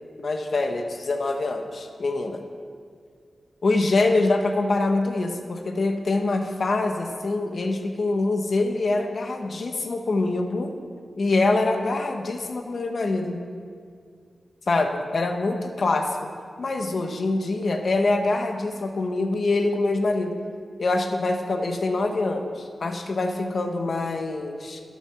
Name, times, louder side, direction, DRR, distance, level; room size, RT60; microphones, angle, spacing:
voice 1, 0.2-2.4 3.6-10.7 11.2-13.4 14.7-16.3 16.6-20.3 20.8-24.8, left 2 dB, 60° left, 5 dB, 1.0 m, -24 dB
12.0 x 6.3 x 5.8 m, 2.1 s
wide cardioid pair, 80°, 0 cm